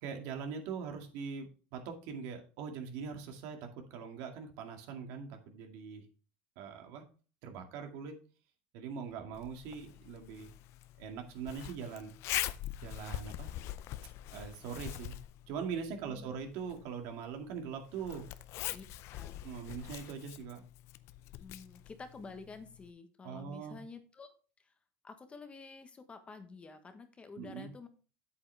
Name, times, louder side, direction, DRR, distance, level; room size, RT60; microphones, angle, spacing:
voice 1, 0.0-6.1 6.6-7.0 7.4-8.2 8.7-10.5 11.0-12.1 12.8-13.5 14.3-15.2 15.5-18.3 19.4-20.6 23.2-23.8 27.4-27.7, right 6 dB, 65° right, 4 dB, 2.2 m, -42 dB
Zipper (clothing), 9.3-22.9, left 14 dB, 55° left, 0.6 m, -44 dB
voice 2, 15.9-16.4 18.7-19.4 21.4-24.7 25.0-27.9, left 4 dB, 20° left, 8 dB, 1.3 m, -50 dB
8.3 x 8.1 x 3.4 m, 0.37 s
supercardioid pair, 120°, 5 cm